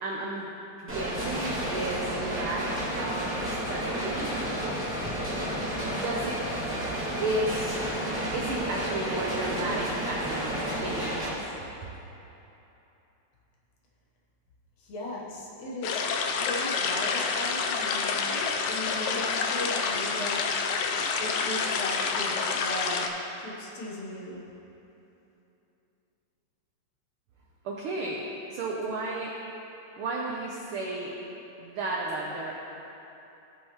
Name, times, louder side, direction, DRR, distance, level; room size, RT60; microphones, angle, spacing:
voice 1, 0.0-0.5 0.8-4.4 5.9-6.5 7.2-7.8 8.3-11.5 27.6-29.4 30.0-31.2 31.6-32.5, right 2 dB, 90° right, -2 dB, 1.2 m, -33 dB
sound 1, 0.9-11.3, right 1 dB, 5° right, 1.4 m, -31 dB
voice 2, 14.8-16.1 16.4-20.6 21.2-23.1 23.4-24.5, left 1 dB, 70° left, -3 dB, 2.2 m, -37 dB
sound 2, 15.8-23.1, left 5 dB, 90° left, 1.3 m, -28 dB
16.0 x 5.4 x 3.0 m, 3.0 s
omnidirectional pair, 3.3 m